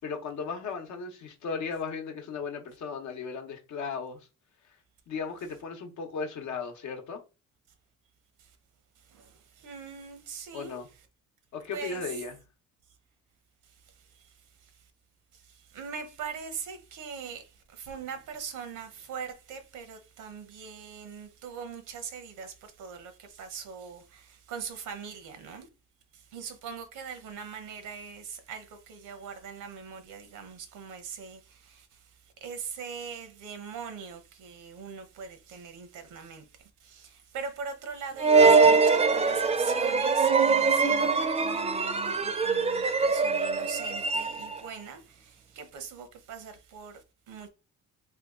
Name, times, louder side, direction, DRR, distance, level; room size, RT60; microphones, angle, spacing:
voice 1, 0.0-4.2 5.1-7.2 10.5-10.9 11.5-12.4, left 5 dB, 70° left, 0.8 m, -36 dB
voice 2, 9.1-10.8 11.7-12.0 14.2-14.3 15.7-25.7 26.1-31.9 32.4-36.4 36.8-47.5, right 6 dB, 80° right, 0.8 m, -41 dB
sound 1, 38.2-44.7, right 4 dB, 20° right, 0.4 m, -23 dB
2.8 x 2.2 x 3.5 m
cardioid pair, 90°, 30 cm